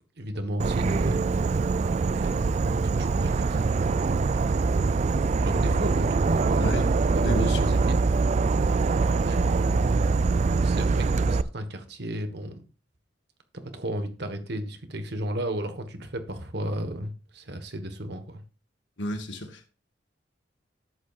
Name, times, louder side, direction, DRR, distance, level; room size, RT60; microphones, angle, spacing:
voice 1, 0.2-4.3 4.5-8.0 9.0-10.3 10.6-12.7 13.6-18.4, right 1 dB, 60° right, 1.5 m, -34 dB
Insect / Frog, 0.6-11.4, right 4 dB, 40° right, 0.3 m, -24 dB
voice 2, 7.2-7.6 19.0-19.7, equal, 70° left, 1.6 m, -31 dB
11.5 x 8.4 x 2.5 m
head